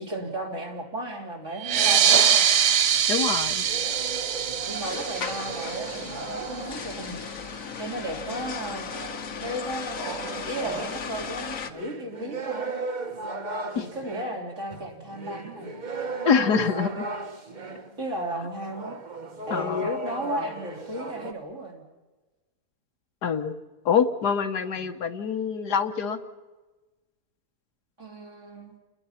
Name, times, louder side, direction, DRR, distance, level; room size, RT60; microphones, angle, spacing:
voice 1, 0.0-2.5 4.7-7.2 7.8-8.9 9.4-10.0 10.4-12.7 13.7-15.7 18.0-19.0 19.5-21.8 24.8-24.9 28.0-28.7, right 1 dB, 45° right, 0 dB, 3.9 m, -34 dB
sound 1, 1.6-6.7, right 8 dB, 75° right, 1.6 m, -23 dB
sound 2, 2.4-11.7, left 6 dB, 55° left, 1.5 m, -37 dB
voice 2, 3.1-3.6 13.8-13.9 16.2-17.0 19.5-19.9 23.2-23.5 23.9-26.2, left 6 dB, 75° left, 7 dB, 1.8 m, -25 dB
sound 3, 3.6-7.1 8.1-18.0 18.6-21.3, right 2 dB, 30° right, 1.3 m, -36 dB
30.0 x 21.0 x 5.8 m, 1.2 s
omnidirectional pair, 1.7 m